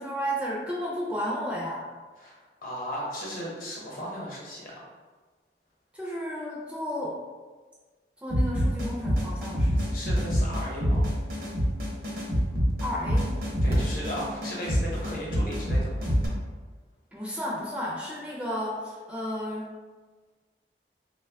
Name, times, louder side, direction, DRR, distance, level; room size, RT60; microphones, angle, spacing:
voice 1, 0.0-1.9 5.9-7.2 8.2-10.0 12.8-13.3 17.1-19.7, equal, 5° right, -6 dB, 0.5 m, -32 dB
voice 2, 2.2-4.8 9.7-11.1 13.6-16.1, equal, 50° left, -4 dB, 0.9 m, -36 dB
sound 1, 8.3-16.3, equal, 55° right, 0.7 m, -26 dB
3.0 x 2.2 x 3.4 m, 1.4 s
head